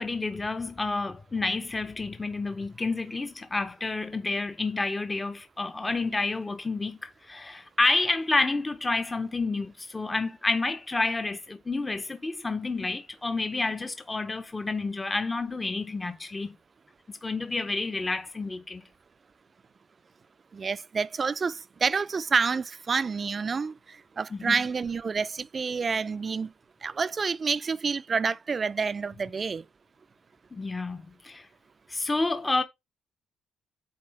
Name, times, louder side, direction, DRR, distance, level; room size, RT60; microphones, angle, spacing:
voice 1, 0.0-16.6 17.1-18.8 24.3-24.6 30.5-31.5 31.9-32.6, left 3 dB, 20° left, 0.5 m, -29 dB
voice 2, 20.5-23.7 24.2-26.5 26.8-29.6, right 5 dB, 40° right, 0.3 m, -28 dB
8.6 x 3.8 x 3.2 m
cardioid pair, 90°, 0 cm